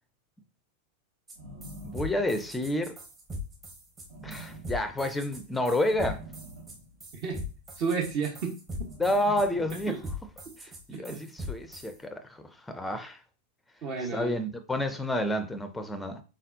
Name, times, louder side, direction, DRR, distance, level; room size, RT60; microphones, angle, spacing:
sound 1, 1.3-1.4 1.6-11.9, left 2 dB, 20° right, 1.2 m, -40 dB
sound 2, 1.3-2.8 4.1-5.1 5.9-7.4 8.7-10.2, right 2 dB, 55° right, 1.5 m, -46 dB
voice 1, 1.8-3.0 4.2-6.2 9.0-10.0 10.6-13.2 14.1-16.2, left 1 dB, 5° left, 0.5 m, -30 dB
voice 2, 7.8-8.9 9.9-10.0 10.9-11.2 13.8-14.4, right 5 dB, 40° right, 1.0 m, -32 dB
4.1 x 3.7 x 2.6 m
figure-of-eight pair, 90°, 0 cm